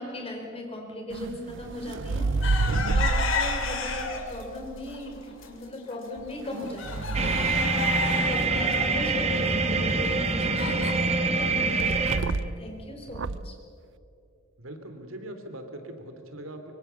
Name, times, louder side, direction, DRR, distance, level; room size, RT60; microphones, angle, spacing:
voice 1, 0.0-7.7 8.0-12.0 12.6-13.5, left 1 dB, 30° left, 2 dB, 4.6 m, -38 dB
sound 1, 1.1-5.2 6.2-8.5 11.8-12.7 13.1-13.6, right 3 dB, 65° right, 0.6 m, -30 dB
sound 2, 2.4-4.4 4.9-5.5 5.9-6.0 6.3-10.9, left 5 dB, 70° left, 2.9 m, -32 dB
sound 3, 7.1-12.2, right 3 dB, 30° right, 1.7 m, -25 dB
voice 2, 14.6-16.7, right 1 dB, 85° right, 6 dB, 3.1 m, -41 dB
24.5 x 24.5 x 7.0 m, 2.6 s
head